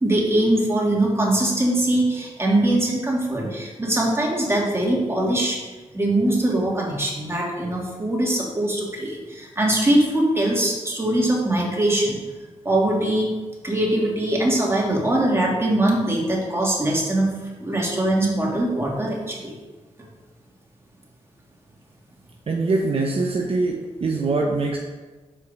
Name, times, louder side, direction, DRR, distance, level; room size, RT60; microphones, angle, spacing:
voice 1, 0.0-5.6 5.9-12.2 12.6-13.3 13.6-17.3 17.6-19.5, right 1 dB, 20° right, -3 dB, 2.3 m, -22 dB
voice 2, 22.5-24.8, right 3 dB, 55° right, 0 dB, 0.8 m, -23 dB
5.5 x 4.7 x 5.4 m, 1.3 s
cardioid pair, 50°, 12 cm